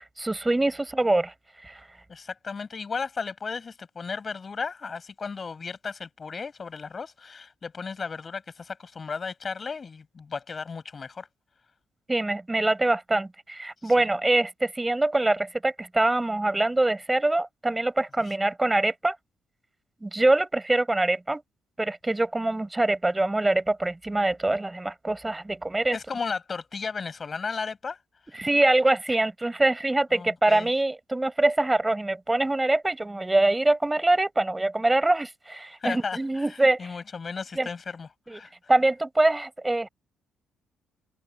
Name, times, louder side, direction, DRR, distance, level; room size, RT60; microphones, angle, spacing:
voice 1, 0.0-1.3 1.6-1.8 12.1-19.1 20.0-21.4 21.8-26.0 28.3-36.9 37.5-37.7 38.3-38.4 38.7-39.9, right 2 dB, 15° right, 4.9 m, -24 dB
voice 2, 2.1-11.3 13.8-14.1 18.3-18.4 25.9-28.0 28.3-28.4 30.1-30.7 35.8-38.7, left 5 dB, 35° left, 7.5 m, -35 dB
cardioid pair, 90°, 0 cm